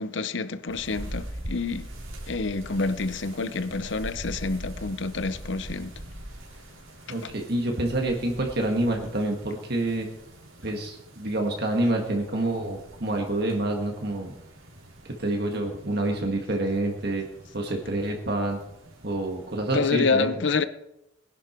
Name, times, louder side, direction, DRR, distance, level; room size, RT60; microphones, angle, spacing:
voice 1, 0.0-1.9 2.3-6.0 7.2-7.3 19.7-20.7, left 4 dB, 65° left, 0.8 m, -28 dB
sound 1, 0.7-19.8, right 1 dB, 85° right, 3.7 m, -43 dB
voice 2, 7.1-10.1 10.6-14.3 15.2-17.2 17.5-18.6 19.0-20.3, right 1 dB, 50° right, 1.7 m, -27 dB
20.0 x 11.0 x 4.5 m
head